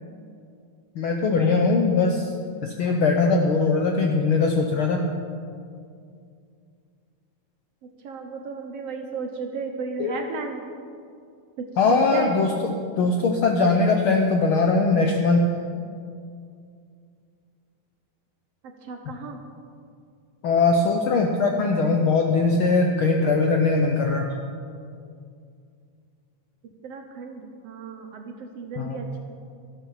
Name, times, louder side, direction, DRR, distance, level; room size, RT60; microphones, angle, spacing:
voice 1, 0.9-2.3 2.6-5.0 10.0-10.2 11.8-12.5 13.0-15.5 20.4-24.3 28.8-29.0, left 3 dB, 85° left, 2 dB, 1.1 m, -21 dB
voice 2, 8.0-10.6 11.6-12.3 13.0-13.1 18.9-19.4 26.8-29.2, right 5 dB, 70° right, 4 dB, 1.6 m, -34 dB
12.5 x 12.0 x 5.7 m, 2.3 s
omnidirectional pair, 3.5 m